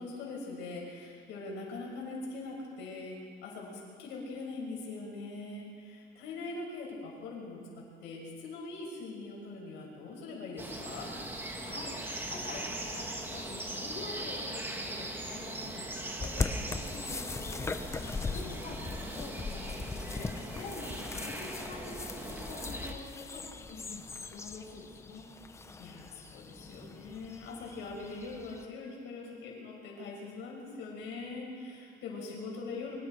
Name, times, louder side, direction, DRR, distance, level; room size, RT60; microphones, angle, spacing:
voice 1, 0.0-11.1 18.1-18.9 25.8-33.0, left 3 dB, 75° left, -2 dB, 5.9 m, -42 dB
sound 1, 10.6-22.9, right 1 dB, 10° right, 1.8 m, -40 dB
voice 2, 11.6-12.0 12.3-17.6 18.3-20.3 20.5-25.3, left 3 dB, 55° left, -4 dB, 4.6 m, -46 dB
sound 2, 16.2-28.6, left 4 dB, 15° left, 0.7 m, -40 dB
24.5 x 24.0 x 4.6 m, 2.3 s
cardioid pair, 165°, 19 cm